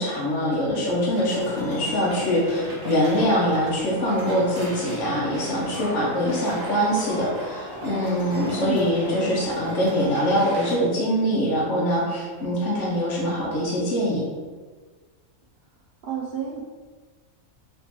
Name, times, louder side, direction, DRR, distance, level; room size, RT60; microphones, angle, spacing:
voice 1, 0.0-14.2, equal, 65° left, -6 dB, 1.1 m, -23 dB
sound 1, 1.1-10.7, equal, 20° right, 0.6 m, -35 dB
voice 2, 16.0-16.6, right 8 dB, 75° right, -4 dB, 0.5 m, -29 dB
4.2 x 2.9 x 2.9 m, 1.4 s
omnidirectional pair, 1.5 m